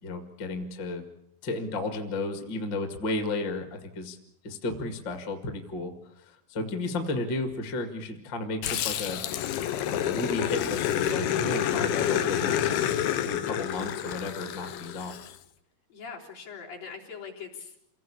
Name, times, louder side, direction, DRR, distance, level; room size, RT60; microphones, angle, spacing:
voice 1, 0.0-1.0 1.4-4.2 4.4-9.3 9.9-12.8 13.2-15.1, left 2 dB, 35° left, 6 dB, 2.1 m, -33 dB
Growling, 8.6-15.3, left 10 dB, 85° left, 3.1 m, -28 dB
voice 2, 15.9-17.9, left 6 dB, 65° left, -2 dB, 5.5 m, -42 dB
28.0 x 18.0 x 8.6 m, 0.78 s
omnidirectional pair, 4.4 m